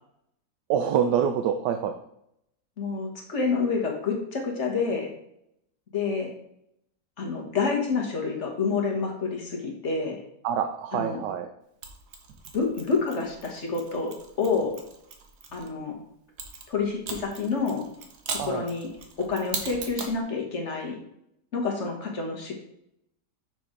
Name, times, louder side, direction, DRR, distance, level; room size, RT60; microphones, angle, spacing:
voice 1, 0.7-1.9 10.4-11.5 18.4-18.7, right 8 dB, 90° right, 7 dB, 1.2 m, -26 dB
voice 2, 2.8-5.1 5.9-6.3 7.2-10.2 10.9-11.2 12.5-14.1 14.4-14.8 15.5-16.0 16.7-17.9 18.4-18.9 19.2-21.0 21.5-22.5, left 4 dB, 45° left, 1 dB, 1.6 m, -28 dB
Mechanisms, 11.8-15.7 16.4-20.2, right 5 dB, 75° right, 1.5 m, -39 dB
6.0 x 6.0 x 3.8 m, 0.76 s
omnidirectional pair, 1.8 m